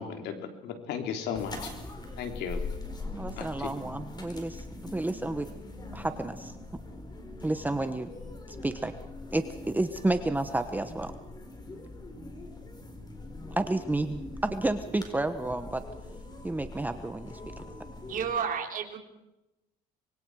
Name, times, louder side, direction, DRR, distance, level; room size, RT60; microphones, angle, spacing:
voice 1, 0.0-1.7 2.2-2.6 3.4-3.7, left 7 dB, 80° left, 5 dB, 3.4 m, -35 dB
sound 1, 1.3-18.3, left 2 dB, 25° left, 4.7 m, -42 dB
voice 2, 3.1-5.5 5.9-6.5 7.4-8.1 8.5-8.9 9.3-11.1 13.6-15.8 16.4-17.6, right 2 dB, 10° right, 9 dB, 1.1 m, -31 dB
voice 3, 18.1-19.0, right 7 dB, 55° right, 4 dB, 3.8 m, -31 dB
25.5 x 23.0 x 4.8 m, 0.94 s
cardioid pair, 110°, 17 cm